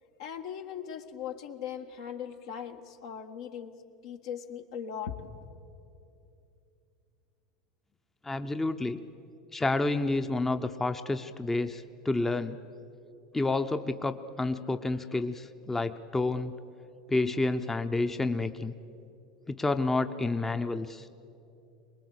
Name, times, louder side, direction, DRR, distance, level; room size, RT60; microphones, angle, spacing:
voice 1, 0.2-3.7 4.0-5.3, left 8 dB, 70° left, 5 dB, 1.5 m, -39 dB
voice 2, 8.2-9.0 9.5-12.6 13.3-16.6 17.1-18.7 19.5-21.1, left 2 dB, 10° left, 9 dB, 0.8 m, -29 dB
23.5 x 21.0 x 8.3 m, 2.7 s
hypercardioid pair, 85°, 3 cm